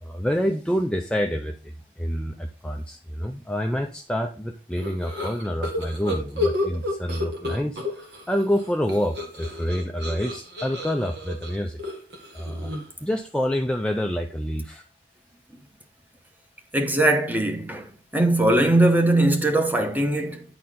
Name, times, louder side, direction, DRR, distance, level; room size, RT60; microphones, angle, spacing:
voice 1, 0.0-11.8 12.3-12.7 13.0-14.8, equal, 5° left, 0.5 m, -27 dB
sound 1, 4.8-8.2 8.5-13.0, left 2 dB, 70° right, 1.9 m, -31 dB
voice 2, 16.7-20.4, right 1 dB, 10° right, 1.0 m, -20 dB
9.6 x 4.2 x 3.7 m
head